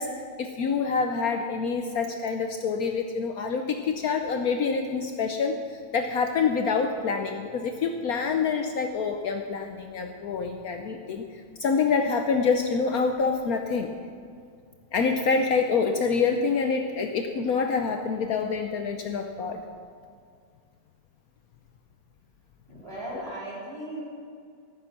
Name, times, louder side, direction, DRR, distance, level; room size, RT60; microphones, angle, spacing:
voice 1, 0.0-13.9 14.9-19.6, left 5 dB, 65° left, 5 dB, 1.1 m, -26 dB
voice 2, 22.7-24.0, right 1 dB, 35° right, -6 dB, 4.1 m, -37 dB
13.5 x 9.6 x 6.0 m, 2.2 s
omnidirectional pair, 1.9 m